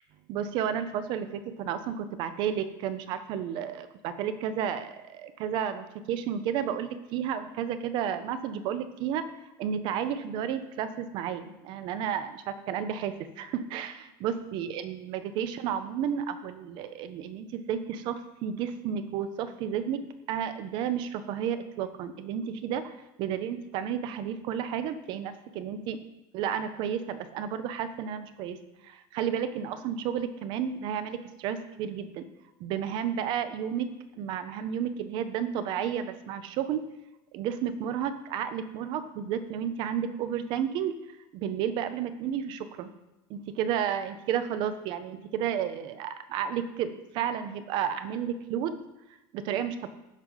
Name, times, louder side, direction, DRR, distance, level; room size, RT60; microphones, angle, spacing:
voice 1, 0.3-9.3 9.6-26.0 26.3-28.6 28.8-32.2 32.6-33.9 34.2-36.9 37.3-41.0 41.3-42.9 43.3-48.8 49.3-49.9, right 8 dB, 45° right, 12 dB, 0.6 m, -32 dB
7.3 x 5.0 x 5.6 m, 0.95 s
cardioid pair, 170°, 11 cm